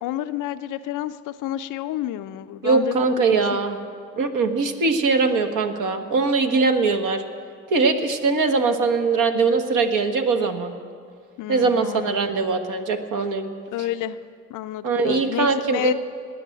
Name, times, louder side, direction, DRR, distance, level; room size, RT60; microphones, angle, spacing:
voice 1, 0.0-3.6 11.4-12.2 13.7-14.2 14.5-15.9, left 13 dB, 50° left, 11 dB, 0.6 m, -30 dB
voice 2, 2.6-3.8 4.2-7.2 7.7-10.8 11.5-13.5 14.8-15.9, right 4 dB, 50° right, 6 dB, 1.5 m, -21 dB
19.0 x 6.8 x 9.1 m, 2.2 s
hypercardioid pair, 65°, 40 cm